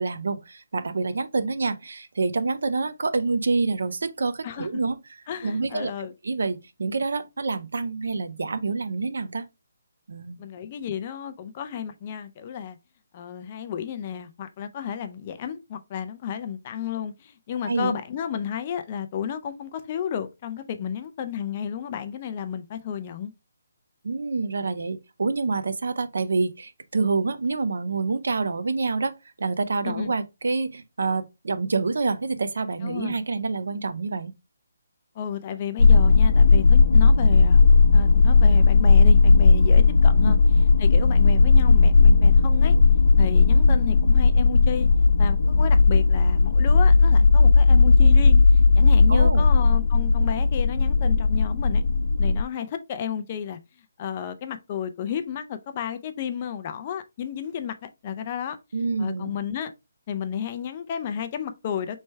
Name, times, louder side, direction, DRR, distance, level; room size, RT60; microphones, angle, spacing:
voice 1, 0.0-5.9 6.2-9.5 10.1-10.4 17.6-18.0 24.0-34.3 40.2-40.4 49.1-49.5 58.7-59.3, right 4 dB, 65° right, 0.6 m, -27 dB
voice 2, 5.3-6.1 10.4-12.8 13.1-23.3 29.8-30.1 32.8-33.2 35.2-37.6 37.9-40.4 40.8-42.7 43.2-44.9 45.2-48.4 48.7-51.8 52.2-53.6 54.0-58.6 59.0-59.7 60.1-62.0, left 8 dB, 25° left, 0.3 m, -32 dB
sound 1, 35.8-52.4, left 4 dB, 60° left, 0.7 m, -16 dB
4.3 x 3.2 x 3.2 m
hypercardioid pair, 175°, 0 cm